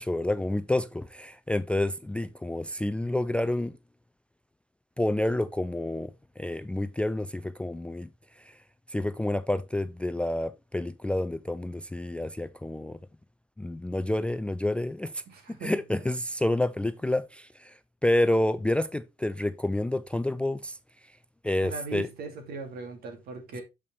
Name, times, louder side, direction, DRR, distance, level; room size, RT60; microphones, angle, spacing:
voice 1, 0.0-3.7 5.0-6.1 6.4-8.1 8.5-8.6 8.9-13.0 13.6-15.2 15.6-17.7 18.0-20.8 21.4-22.1, left 1 dB, 5° left, 0.4 m, -29 dB
voice 2, 15.3-15.8 21.6-23.6, right 4 dB, 65° right, 2.3 m, -39 dB
6.9 x 5.4 x 3.2 m
cardioid pair, 110°, 17 cm